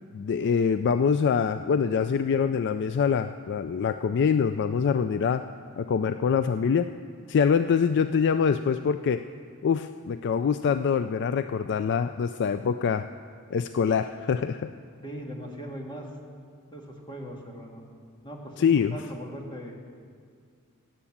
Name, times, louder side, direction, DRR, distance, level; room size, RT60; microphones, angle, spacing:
voice 1, 0.1-5.4 5.8-6.9 7.3-9.2 9.6-13.1 13.5-14.7 18.6-19.0, left 6 dB, 50° left, 10 dB, 0.3 m, -24 dB
voice 2, 15.0-16.1 16.7-17.8 18.2-19.8, equal, 20° left, 0 dB, 1.7 m, -39 dB
17.0 x 8.3 x 7.3 m, 2.1 s
head